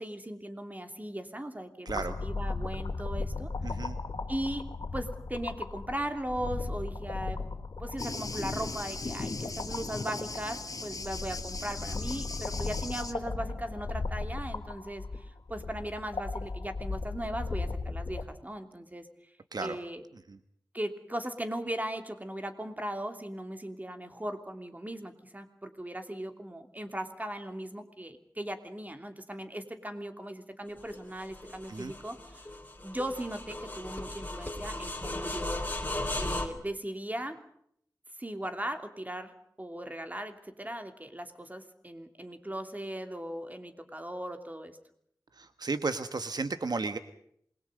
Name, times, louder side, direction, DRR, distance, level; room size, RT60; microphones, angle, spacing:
voice 1, 0.0-3.5 4.3-7.4 7.8-19.1 19.6-20.0 20.7-32.5 32.8-35.7 36.2-37.4 38.2-39.3 39.6-44.8, right 1 dB, 25° right, 7 dB, 3.1 m, -38 dB
sound 1, 1.9-18.2, left 3 dB, 80° left, 2.5 m, -37 dB
voice 2, 3.6-4.0 19.5-19.8 20.3-20.4 31.7-31.9 45.4-47.0, right 3 dB, 70° right, 10 dB, 1.3 m, -33 dB
Thunder, 8.0-13.1, left 3 dB, 55° left, 2.1 m, -38 dB
sound 2, 30.8-36.5, left 1 dB, 25° left, 3.8 m, -36 dB
27.5 x 22.0 x 5.3 m, 0.69 s
wide cardioid pair, 60°, 7 cm